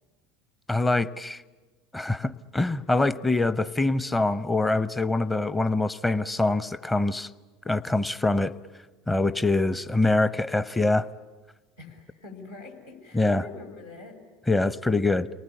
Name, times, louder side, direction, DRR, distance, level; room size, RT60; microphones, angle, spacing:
voice 1, 0.7-1.4 1.9-7.3 7.7-8.5 9.1-11.1 13.1-13.4 14.5-15.3, left 2 dB, 10° left, 14 dB, 0.8 m, -24 dB
voice 2, 11.8-14.2, left 3 dB, 70° left, 1 dB, 5.6 m, -44 dB
29.0 x 20.0 x 9.9 m, 1.3 s
figure-of-eight pair, 70°, 0 cm